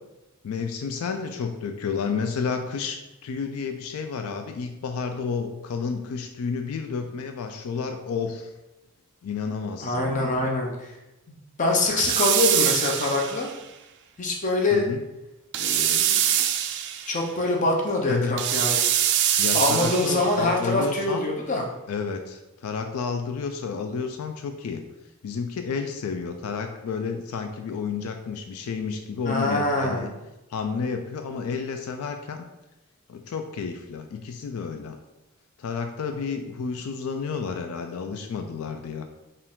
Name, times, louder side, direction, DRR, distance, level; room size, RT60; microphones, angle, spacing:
voice 1, 0.4-8.5 9.2-10.5 14.7-15.0 18.1-18.4 19.4-21.3 21.9-24.8 25.2-30.1 30.5-32.4 33.1-35.0 35.6-39.1, left 5 dB, 80° left, 6 dB, 0.4 m, -31 dB
voice 2, 9.8-10.9 11.3-13.5 14.2-14.9 15.6-16.3 17.1-18.8 19.5-21.6 29.2-30.1, left 2 dB, 35° left, 0 dB, 0.7 m, -24 dB
sound 1, 12.0-13.6 15.5-17.2 18.4-20.4, right 10 dB, 55° right, 0.3 m, -24 dB
4.5 x 2.5 x 3.6 m, 0.97 s
head